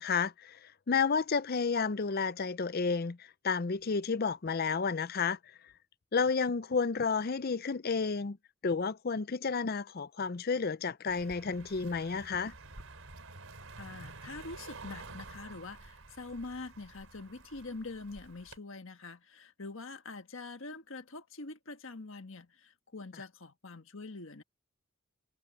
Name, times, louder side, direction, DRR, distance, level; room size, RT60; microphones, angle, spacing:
voice 1, 0.0-5.4 6.1-8.4 8.6-12.5, left 5 dB, 45° left, 0.5 m, -31 dB
Car passing by, 11.1-18.6, right 3 dB, 70° right, 4.3 m, -50 dB
voice 2, 13.8-24.4, left 3 dB, 65° left, 1.4 m, -44 dB
head